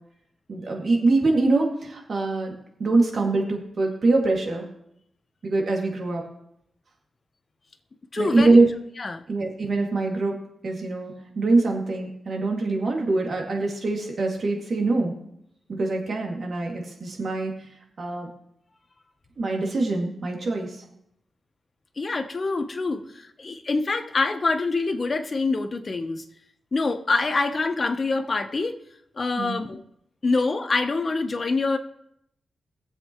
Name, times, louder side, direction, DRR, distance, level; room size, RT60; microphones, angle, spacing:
voice 1, 0.5-4.7 5.4-6.2 8.2-8.7 9.3-10.4 10.6-15.1 15.7-17.6 18.0-18.3 19.4-20.8 29.4-29.6, right 3 dB, 50° right, 0 dB, 2.4 m, -23 dB
voice 2, 8.1-8.6 9.0-9.2 22.0-26.2 26.7-28.8 29.2-29.8 30.2-31.8, left 3 dB, 35° left, 8 dB, 0.8 m, -25 dB
21.5 x 7.5 x 3.1 m, 0.76 s
wide cardioid pair, 135°, 0 cm